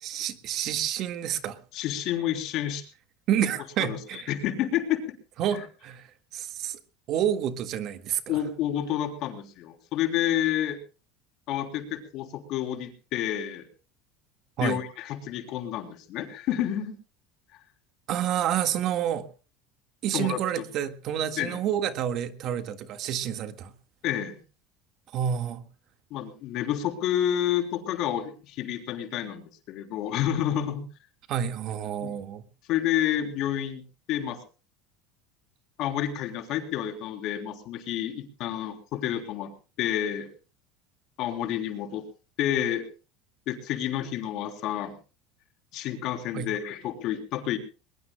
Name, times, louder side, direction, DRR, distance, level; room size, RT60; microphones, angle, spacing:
voice 1, 0.0-1.6 3.3-4.3 5.4-6.8 7.1-8.4 14.6-14.8 18.1-19.3 20.0-23.7 25.1-25.6 31.3-32.4 46.3-46.5, right 10 dB, 50° right, 9 dB, 1.7 m, -29 dB
voice 2, 1.7-2.8 3.8-5.0 8.3-10.8 11.5-13.7 14.6-16.9 17.5-17.6 20.1-20.4 21.4-21.6 24.0-24.4 26.1-30.9 32.0-32.1 32.7-33.8 34.1-34.4 35.8-39.5 39.8-40.3 41.2-42.0 42.4-42.9 43.5-44.9 45.7-47.6, left 11 dB, 55° left, 5 dB, 3.5 m, -29 dB
21.5 x 21.5 x 2.2 m, 0.35 s
supercardioid pair, 125°, 0 cm